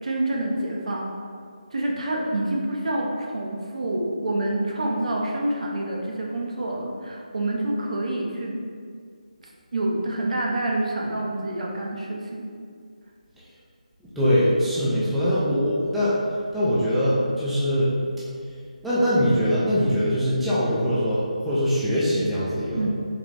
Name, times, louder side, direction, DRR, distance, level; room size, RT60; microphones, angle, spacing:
voice 1, 0.0-1.1 1.7-8.6 9.7-12.5 22.7-22.9, right 1 dB, 60° right, -1 dB, 0.6 m, -27 dB
voice 2, 14.2-16.2 16.5-18.1 18.8-22.9, equal, ahead, -11 dB, 0.4 m, -22 dB
3.7 x 2.4 x 3.2 m, 2.2 s
figure-of-eight pair, 155°, 4 cm